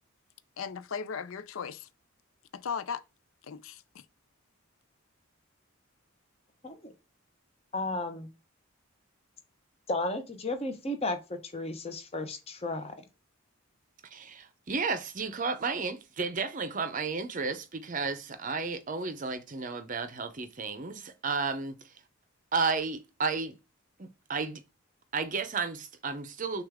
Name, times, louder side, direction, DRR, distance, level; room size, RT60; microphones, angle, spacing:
voice 1, 0.6-1.9 2.5-3.0 3.5-3.8, left 6 dB, 70° left, 0.5 m, -36 dB
voice 2, 7.7-8.3 9.9-12.9, left 2 dB, 30° left, 0.8 m, -34 dB
voice 3, 14.1-21.9 22.5-23.6 24.0-24.6 25.1-26.6, right 4 dB, 35° right, 0.6 m, -33 dB
6.2 x 2.4 x 3.5 m
head